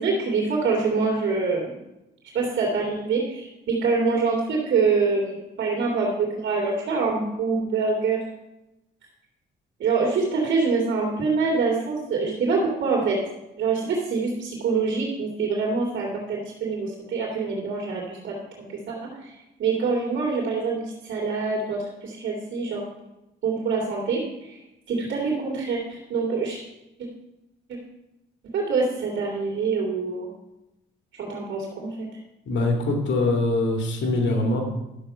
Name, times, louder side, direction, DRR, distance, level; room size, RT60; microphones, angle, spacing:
voice 1, 0.0-1.7 2.3-8.2 9.8-13.2 13.6-22.8 23.4-24.6 24.9-26.6 28.5-30.3 31.2-32.1, right 4 dB, 65° right, -2 dB, 2.7 m, -25 dB
voice 2, 32.5-34.6, left 2 dB, 65° left, 2 dB, 2.4 m, -23 dB
12.0 x 7.2 x 5.6 m, 0.94 s
cardioid pair, 90°, 20 cm